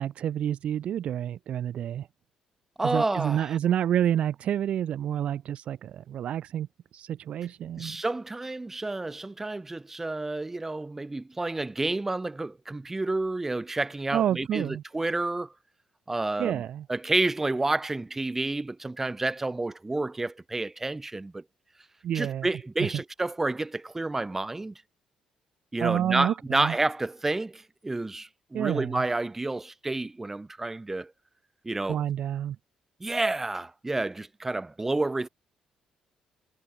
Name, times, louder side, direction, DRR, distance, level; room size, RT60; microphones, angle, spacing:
voice 1, 0.0-2.1 2.8-6.7 6.9-8.0 14.1-14.8 16.4-16.9 22.0-22.5 22.8-22.9 25.8-26.7 28.5-29.0 31.9-32.6, right 10 dB, 60° right, 3.5 m, -28 dB
voice 2, 2.8-3.6 7.8-15.5 16.1-16.6 16.9-21.4 22.1-24.7 25.7-31.1 31.7-32.0 33.0-35.3, right 2 dB, 15° right, 3.8 m, -30 dB
cardioid pair, 110°, 2 cm